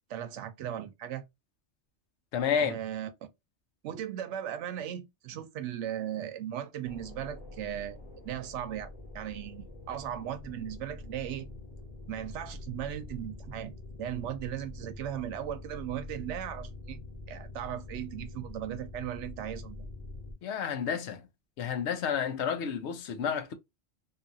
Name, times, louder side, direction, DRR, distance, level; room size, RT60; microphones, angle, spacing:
voice 1, 0.1-1.2 2.6-3.1 3.8-8.0 8.2-11.5 12.1-13.7 14.0-17.0 17.3-19.9, right 10 dB, 80° right, 0.9 m, -37 dB
voice 2, 2.3-2.8 20.4-21.2 21.6-23.5, left 7 dB, 75° left, 0.9 m, -30 dB
sound 1, 6.8-20.3, left 2 dB, 35° left, 1.0 m, -45 dB
2.7 x 2.4 x 2.5 m
omnidirectional pair, 1.2 m